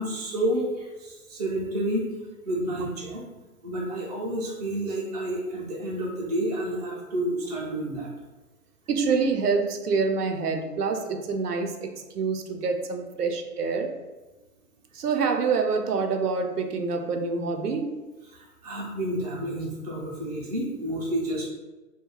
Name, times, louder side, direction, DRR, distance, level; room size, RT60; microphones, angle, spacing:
voice 1, 0.0-2.1 2.4-3.2 3.6-8.1 18.3-21.5, right 1 dB, 30° right, -4 dB, 0.4 m, -30 dB
voice 2, 8.9-13.9 14.9-18.0, right 4 dB, 90° right, 5 dB, 0.5 m, -26 dB
2.3 x 2.2 x 3.0 m, 1.2 s
hypercardioid pair, 135°, 45 cm